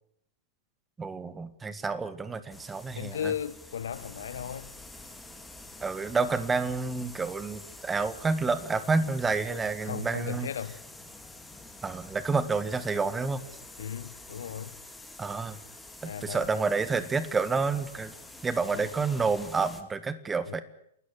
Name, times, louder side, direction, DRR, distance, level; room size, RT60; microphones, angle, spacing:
voice 1, 1.0-3.3 5.8-10.5 11.8-13.4 15.2-15.6 16.0-18.1 18.4-20.6, right 4 dB, 15° right, 1.7 m, -29 dB
sound 1, 2.5-19.8, left 2 dB, 5° left, 2.6 m, -47 dB
voice 2, 2.9-4.7 9.8-10.8 13.8-14.7 16.0-16.5 18.7-18.9 20.4-20.6, left 8 dB, 65° left, 1.1 m, -36 dB
28.5 x 13.5 x 9.9 m
figure-of-eight pair, 105°, 0 cm